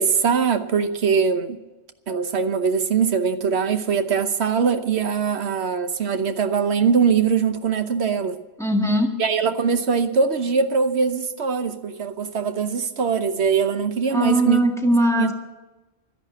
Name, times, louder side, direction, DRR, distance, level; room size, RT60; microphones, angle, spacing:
voice 1, 0.0-1.6 2.1-8.4 9.2-14.6 14.9-15.3, right 6 dB, 75° right, 9 dB, 1.2 m, -22 dB
voice 2, 8.6-9.1 14.1-15.3, equal, 5° left, 2 dB, 1.7 m, -20 dB
13.0 x 10.5 x 7.5 m, 1.1 s
omnidirectional pair, 1.1 m